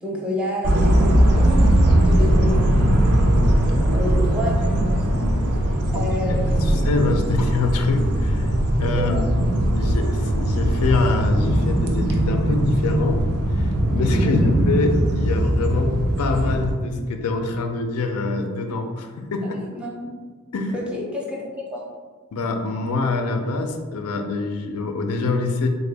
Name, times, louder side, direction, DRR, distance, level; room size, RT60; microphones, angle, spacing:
voice 1, 0.0-3.4 3.9-5.0 5.7-6.8 8.9-9.3 14.2-14.5 19.7-20.1 20.7-21.4 21.7-21.8, left 1 dB, 5° right, -3 dB, 0.5 m, -29 dB
sound 1, 0.6-16.7, right 1 dB, 85° right, 0.5 m, -20 dB
voice 2, 5.9-8.5 8.8-9.2 9.7-13.2 13.5-19.6 20.5-20.8 22.3-25.7, left 3 dB, 85° left, 5 dB, 0.4 m, -25 dB
3.6 x 2.1 x 3.3 m, 1.5 s
head